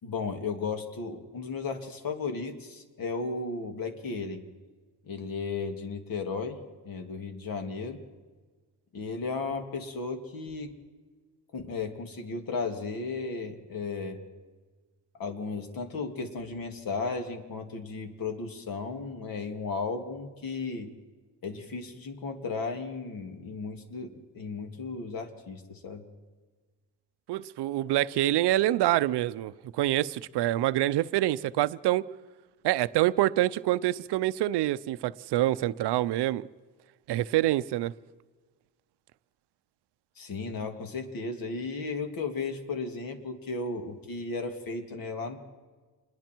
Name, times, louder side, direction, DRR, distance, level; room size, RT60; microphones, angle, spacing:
voice 1, 0.0-4.4 5.0-8.0 8.9-10.7 11.5-14.2 15.2-20.9 21.4-26.0 40.2-45.4, left 4 dB, 55° left, 2.7 m, -35 dB
voice 2, 27.3-32.0 32.6-36.4 37.1-37.9, right 14 dB, 80° right, 0.7 m, -26 dB
27.5 x 21.0 x 4.6 m
cardioid pair, 150°, 40 cm